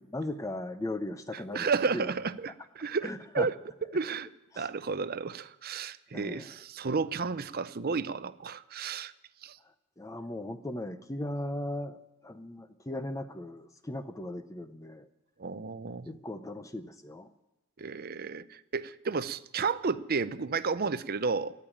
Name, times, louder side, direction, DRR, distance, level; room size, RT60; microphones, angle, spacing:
voice 1, 0.1-1.7 1.9-2.1 3.0-3.5 4.5-4.7 6.1-6.6 10.0-12.0 12.2-15.1 16.1-17.3, left 1 dB, 15° left, 10 dB, 0.6 m, -37 dB
voice 2, 1.5-3.5 3.9-4.3 4.6-9.1 9.4-9.6 15.4-16.1 17.8-21.5, right 4 dB, 45° right, 14 dB, 0.6 m, -32 dB
13.5 x 8.9 x 9.9 m, 0.98 s
head